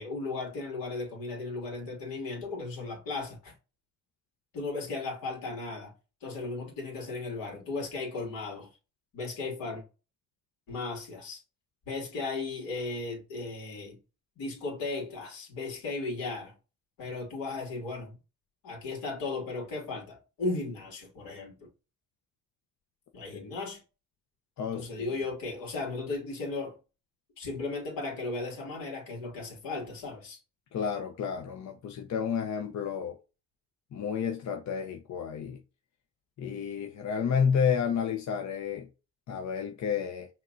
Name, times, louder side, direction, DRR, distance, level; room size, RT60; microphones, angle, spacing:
voice 1, 0.0-3.5 4.5-5.9 6.2-8.7 9.1-9.8 10.7-11.4 11.8-14.0 14.4-16.5 17.0-18.2 18.6-21.7 23.1-23.8 24.7-26.8 27.4-30.4, left 3 dB, 80° left, 2.6 m, -36 dB
voice 2, 24.6-24.9 30.7-33.2 33.9-35.6 36.4-38.9 39.3-40.3, left 7 dB, 55° left, 0.8 m, -30 dB
5.6 x 3.1 x 2.6 m
supercardioid pair, 70°, 35 cm